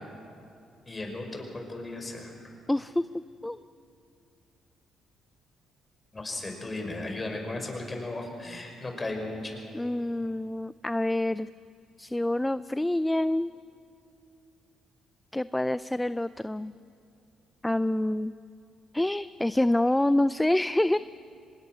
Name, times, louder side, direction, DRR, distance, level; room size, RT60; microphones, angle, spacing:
voice 1, 0.9-2.3 6.1-9.6, left 2 dB, 25° left, 2 dB, 5.5 m, -36 dB
voice 2, 2.7-3.0 3.4-3.6 9.7-11.5 12.0-13.5 15.3-16.7 17.6-18.3 18.9-21.0, left 1 dB, 10° left, 15 dB, 0.4 m, -26 dB
24.5 x 20.5 x 6.2 m, 2.5 s
supercardioid pair, 60°, 0 cm